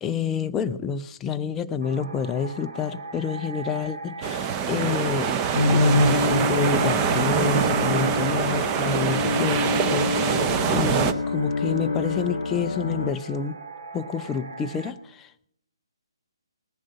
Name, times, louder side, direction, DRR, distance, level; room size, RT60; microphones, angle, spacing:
voice 1, 0.0-5.4 5.7-13.6 13.9-15.5, left 6 dB, 10° left, 8 dB, 0.4 m, -28 dB
sound 1, 1.8-14.9, right 3 dB, 60° right, 1.6 m, -41 dB
sound 2, 4.2-11.1, right 7 dB, 20° right, 0.7 m, -24 dB
sound 3, 5.5-13.1, left 3 dB, 60° left, 0.6 m, -26 dB
19.5 x 7.3 x 6.5 m, 0.75 s
figure-of-eight pair, 140°, 3 cm